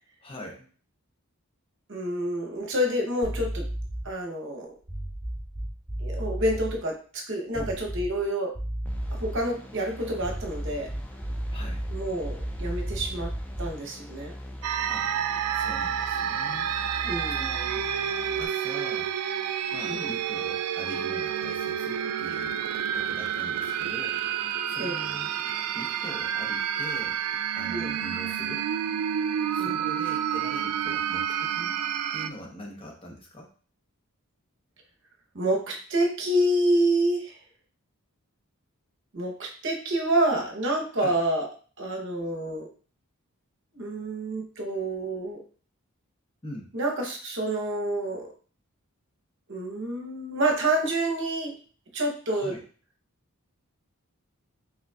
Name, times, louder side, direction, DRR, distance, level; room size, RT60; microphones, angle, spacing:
voice 1, 0.2-0.7 7.5-7.7 11.5-11.8 14.9-15.1 15.5-16.7 17.3-17.9 18.3-19.1 19.7-22.6 22.9-25.4 25.7-27.2 27.6-28.7 29.5-31.8 32.1-33.5 41.0-41.1 46.4-46.7 52.3-52.6, equal, 25° left, 0 dB, 0.8 m, -42 dB
voice 2, 1.9-3.7 4.0-4.7 6.0-8.6 9.1-10.9 11.9-13.3 13.6-14.3 17.0-17.4 19.8-20.1 24.8-24.9 27.7-28.0 29.6-29.9 35.3-37.4 39.1-41.5 41.8-42.7 43.7-45.4 46.7-48.3 49.5-51.6 51.9-52.6, right 1 dB, 55° right, 1 dB, 0.8 m, -28 dB
sound 1, 3.2-4.2 4.8-6.8 7.5-8.3 8.5-9.5 10.2-13.8, right 1 dB, 15° right, 2.2 m, -34 dB
sound 2, 8.9-18.5, equal, 5° left, 0.3 m, -41 dB
sound 3, 14.6-32.3, right 9 dB, 85° right, 0.3 m, -29 dB
5.1 x 3.8 x 2.3 m, 0.41 s
head